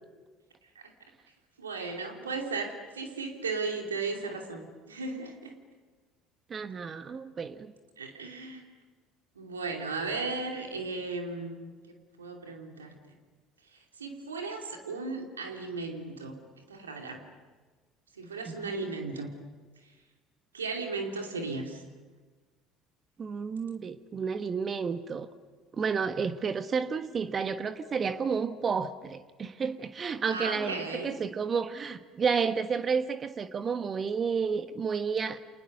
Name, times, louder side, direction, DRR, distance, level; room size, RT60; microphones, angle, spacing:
voice 1, 1.6-5.6 8.0-8.7 9.3-13.1 13.7-16.4 16.7-17.2 18.1-19.3 19.8-19.9 20.5-21.8 30.3-31.1, right 3 dB, 80° right, 3 dB, 2.7 m, -36 dB
voice 2, 6.5-7.7 18.5-18.7 23.2-25.3 25.7-35.4, right 5 dB, 35° right, 11 dB, 1.3 m, -31 dB
30.0 x 27.5 x 6.6 m, 1.4 s
figure-of-eight pair, 60°, 0 cm